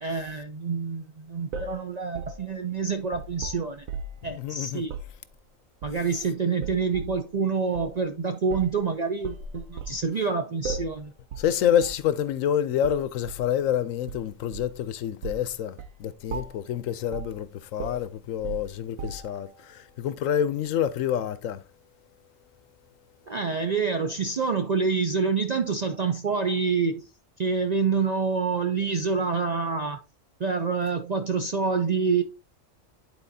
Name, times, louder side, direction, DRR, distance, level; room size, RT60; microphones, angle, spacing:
voice 1, 0.0-3.9 4.2-4.9 5.8-11.1 23.3-27.1 27.4-30.0 30.4-32.2, right 5 dB, 55° right, 0.4 m, -27 dB
sound 1, 1.5-4.3 4.8-5.2 5.8-6.2 6.6-7.2 7.7-7.9 8.5-8.8 9.2-10.0 10.6-11.0 11.3-11.5 11.8-12.1 12.8-13.5 14.1-14.8 15.2-15.5 15.8-16.0 16.3-16.7 17.1-17.4 17.8-19.5, right 4 dB, 85° right, 1.2 m, -37 dB
voice 2, 4.3-4.8 11.4-21.6, left 9 dB, 85° left, 1.0 m, -27 dB
10.5 x 4.2 x 2.7 m
omnidirectional pair, 1.4 m